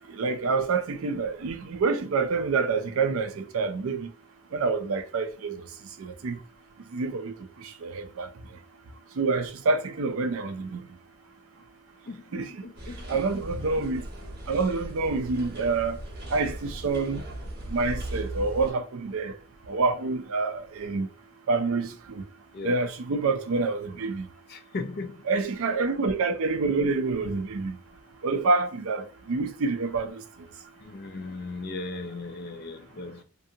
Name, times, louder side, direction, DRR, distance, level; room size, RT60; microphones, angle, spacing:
voice 1, 0.2-4.1 4.5-5.5 6.0-6.3 6.9-7.3 7.8-8.3 9.2-10.8 12.3-12.5 13.1-14.0 14.5-16.0 16.3-17.2 17.7-19.3 19.7-21.1 21.5-21.9 22.6-24.2 25.3-27.7 28.2-30.1, right 4 dB, 65° right, 0.4 m, -27 dB
voice 2, 12.6-13.0 22.5-22.7 24.5-25.1 30.8-33.2, left 3 dB, 45° left, 0.4 m, -36 dB
sound 1, 12.7-18.7, right 1 dB, 45° right, 1.1 m, -38 dB
2.6 x 2.5 x 2.7 m
head